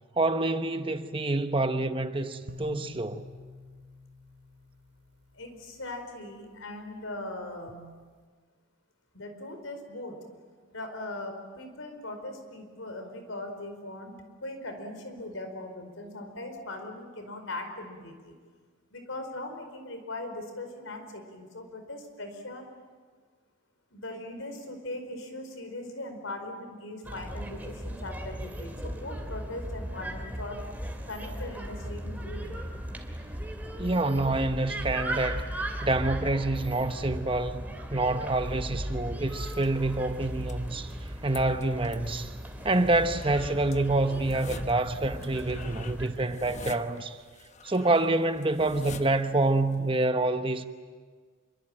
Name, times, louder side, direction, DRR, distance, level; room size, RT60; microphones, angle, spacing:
voice 1, 0.2-3.2 33.8-35.5 35.8-37.6 37.9-40.9 41.2-42.4 42.6-47.2 47.6-50.7, right 2 dB, 25° right, 1.1 m, -27 dB
sound 1, 2.5-5.8, left 2 dB, 55° right, 1.5 m, -47 dB
voice 2, 5.3-7.9 9.1-10.2 10.7-18.3 18.9-22.6 23.9-30.6 31.1-32.5, left 2 dB, 90° left, 4.8 m, -40 dB
sound 2, 27.0-46.1, right 1 dB, 10° right, 2.9 m, -37 dB
sound 3, 39.4-50.0, left 3 dB, 35° left, 1.1 m, -47 dB
27.0 x 24.0 x 8.9 m
head